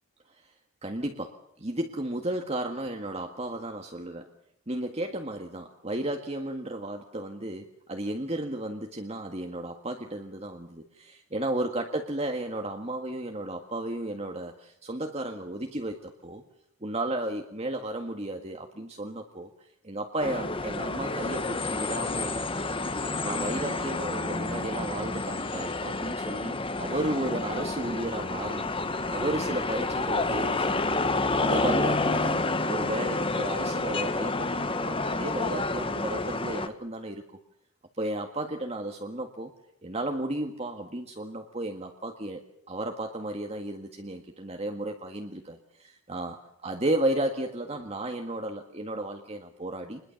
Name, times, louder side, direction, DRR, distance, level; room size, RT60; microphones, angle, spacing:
voice 1, 0.8-4.3 4.7-16.4 16.8-19.5 19.8-22.3 23.0-28.7 29.1-37.4 38.0-39.5 39.8-50.0, right 1 dB, 30° right, 4 dB, 1.7 m, -33 dB
sound 1, 20.2-36.7, left 2 dB, 25° left, 1.3 m, -29 dB
26.5 x 21.0 x 7.1 m, 0.75 s
head